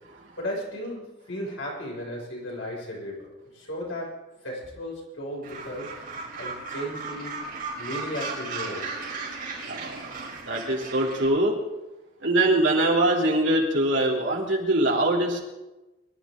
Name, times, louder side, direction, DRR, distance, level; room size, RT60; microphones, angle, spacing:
voice 1, 0.4-3.3 3.5-4.1 4.4-5.9 6.4-7.4 7.8-9.0, left 1 dB, 80° left, -3 dB, 6.6 m, -35 dB
Gull seagull, 5.4-11.3, right 4 dB, 45° right, 5.2 m, -36 dB
voice 2, 9.7-10.2 10.5-11.5 12.2-15.4, right 1 dB, 65° right, -2 dB, 3.3 m, -23 dB
24.0 x 12.5 x 3.9 m, 1.0 s
head